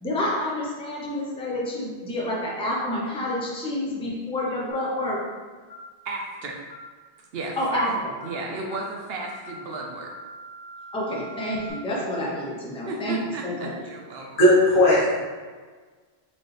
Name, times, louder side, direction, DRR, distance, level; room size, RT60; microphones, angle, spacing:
voice 1, 0.0-5.2 7.6-7.9 10.9-13.2 13.4-13.8, left 1 dB, 5° left, -4 dB, 0.6 m, -28 dB
sound 1, 4.7-5.0 5.7-5.9 6.7-7.0 7.7-7.9 8.2-8.4 8.7-8.9 9.2-11.7, equal, 85° left, 1.2 m, -43 dB
voice 2, 6.0-6.7 7.3-10.1 12.9-14.4, right 3 dB, 65° right, 0 dB, 0.8 m, -34 dB
voice 3, 14.4-15.2, left 1 dB, 50° left, -6 dB, 1.3 m, -17 dB
4.2 x 3.1 x 3.2 m, 1.5 s
omnidirectional pair, 1.1 m